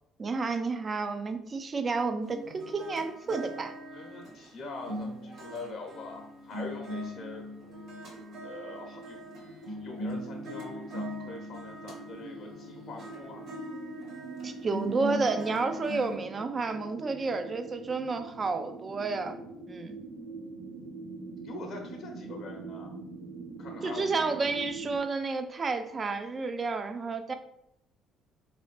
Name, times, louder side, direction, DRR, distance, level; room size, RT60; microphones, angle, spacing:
voice 1, 0.2-3.7 14.4-19.4 19.7-20.0 23.8-27.3, right 4 dB, 35° right, 8 dB, 0.5 m, -31 dB
sound 1, 2.2-16.1, equal, 70° right, 1.4 m, -40 dB
voice 2, 3.9-7.5 8.4-9.2 9.7-13.4 21.4-23.0 23.6-24.4, left 3 dB, 60° left, 1 dB, 0.7 m, -43 dB
sound 2, 7.6-25.0, right 3 dB, 90° right, 0.8 m, -44 dB
4.1 x 2.7 x 3.1 m, 0.78 s
supercardioid pair, 80°, 0 cm